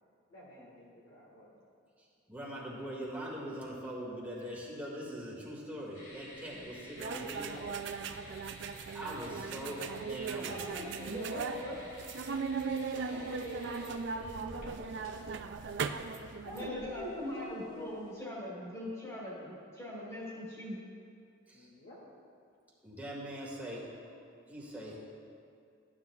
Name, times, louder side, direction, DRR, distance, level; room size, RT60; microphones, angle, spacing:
voice 1, 0.3-1.6 7.1-7.8 13.0-15.3 16.4-17.9 21.5-22.0, left 1 dB, 60° left, -5 dB, 2.0 m, -47 dB
voice 2, 2.3-7.8 8.9-10.6 12.9-13.2 21.5-21.7 22.8-23.9 24.5-25.0, equal, 10° right, -5 dB, 1.8 m, -42 dB
sound 1, 5.9-18.2, left 1 dB, 40° left, 2.5 m, -53 dB
sound 2, 7.0-16.7, right 5 dB, 60° right, 0.4 m, -38 dB
voice 3, 10.4-11.9 16.5-20.8, left 1 dB, 15° left, -6 dB, 2.5 m, -41 dB
14.5 x 9.8 x 2.3 m, 2.3 s
head